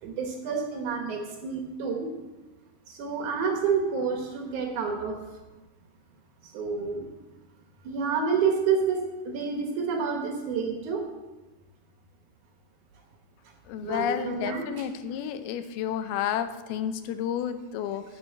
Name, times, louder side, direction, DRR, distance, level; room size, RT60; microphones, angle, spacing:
voice 1, 0.0-2.1 2.9-5.2 6.5-7.0 7.8-11.0 13.8-14.9, right 5 dB, 65° right, 2 dB, 2.2 m, -29 dB
voice 2, 13.7-18.0, left 9 dB, 85° left, 10 dB, 2.6 m, -31 dB
10.0 x 6.3 x 7.4 m, 1.2 s
omnidirectional pair, 4.4 m